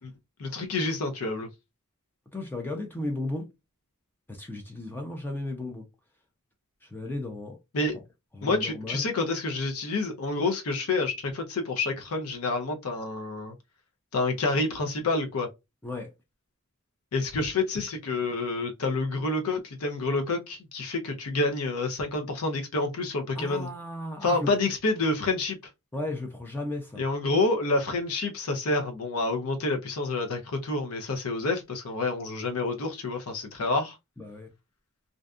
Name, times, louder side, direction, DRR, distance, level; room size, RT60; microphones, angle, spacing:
voice 1, 0.4-1.5 7.7-7.9 8.4-13.5 14.1-15.5 17.1-23.7 24.2-25.6 27.0-34.0, left 3 dB, 75° left, 0.6 m, -28 dB
voice 2, 2.3-3.5 4.3-5.8 6.9-7.6 8.3-9.0 15.8-16.1 23.3-24.5 25.9-27.0 34.2-34.5, left 2 dB, 10° left, 0.4 m, -34 dB
2.6 x 2.2 x 2.4 m
head